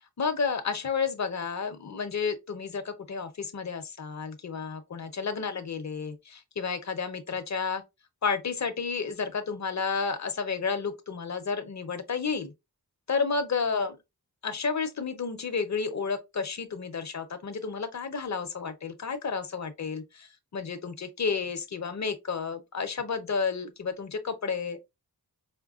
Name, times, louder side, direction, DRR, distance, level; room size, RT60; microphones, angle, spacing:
voice 1, 0.2-7.8 8.2-12.5 13.1-14.0 14.4-24.8, left 5 dB, 45° left, 0.7 m, -31 dB
5.1 x 2.1 x 2.4 m
wide cardioid pair, 90°, 38 cm